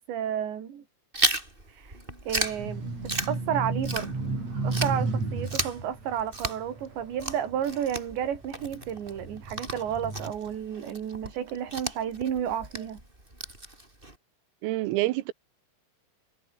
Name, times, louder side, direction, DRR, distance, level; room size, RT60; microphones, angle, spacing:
voice 1, 0.1-0.8 1.7-2.0 2.3-2.9 3.3-4.1 4.6-13.0, right 9 dB, 60° right, 5.3 m, -31 dB
Chewing mastication, 1.1-4.4 4.7-14.1, right 1 dB, 10° right, 5.6 m, -34 dB
sound 1, 2.4-7.9 8.5-10.3, right 3 dB, 30° right, 8.4 m, -33 dB
voice 2, 14.6-15.3, right 17 dB, 90° right, 3.9 m, -27 dB
omnidirectional pair, 5.9 m